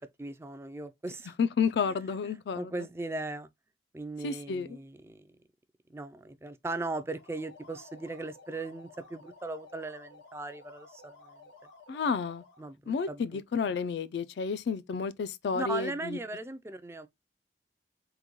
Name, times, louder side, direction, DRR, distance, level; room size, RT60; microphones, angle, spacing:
voice 1, 0.2-1.3 2.2-3.5 3.9-5.4 5.9-11.4 12.6-13.4 15.5-17.1, right 2 dB, 15° right, 0.3 m, -38 dB
voice 2, 1.4-2.7 4.2-4.8 11.9-12.4 12.9-16.2, left 5 dB, 70° left, 0.3 m, -31 dB
sound 1, 7.0-12.7, left 3 dB, 90° left, 1.4 m, -54 dB
3.8 x 2.2 x 2.9 m
head